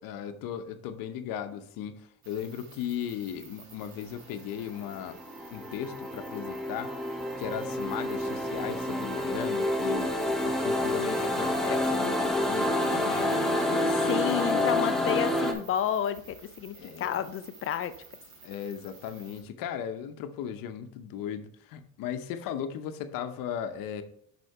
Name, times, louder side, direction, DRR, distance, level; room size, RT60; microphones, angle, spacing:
voice 1, 0.0-5.2 5.5-7.0 7.4-10.1 10.4-15.3 16.7-17.2 18.4-24.0, left 8 dB, 80° left, 8 dB, 0.8 m, -37 dB
sound 1, 2.2-19.4, right 4 dB, 60° right, 1.9 m, -53 dB
sound 2, 4.8-15.5, left 1 dB, ahead, 0.8 m, -28 dB
voice 2, 13.9-17.9, left 10 dB, 40° left, 13 dB, 0.4 m, -31 dB
6.4 x 5.2 x 4.6 m, 0.67 s
cardioid pair, 145°, 33 cm